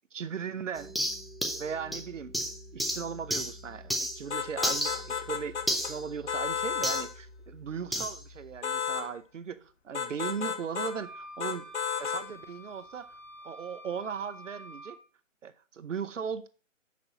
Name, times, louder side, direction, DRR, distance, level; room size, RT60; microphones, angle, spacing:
voice 1, 0.1-0.9 1.6-2.3 2.7-11.7 12.0-13.2 13.4-15.0 15.4-16.5, right 6 dB, 65° right, 0.8 m, -38 dB
sound 1, 0.7-4.3 4.6-7.1 7.9-8.2, equal, ahead, 0.3 m, -33 dB
sound 2, 4.3-5.9 6.3-7.1 8.6-9.1 9.9-11.0 11.4-12.3, left 7 dB, 60° left, 0.9 m, -32 dB
sound 3, 10.8-15.0, equal, 20° right, 1.4 m, -48 dB
6.1 x 5.4 x 5.9 m
hypercardioid pair, 160°, 39 cm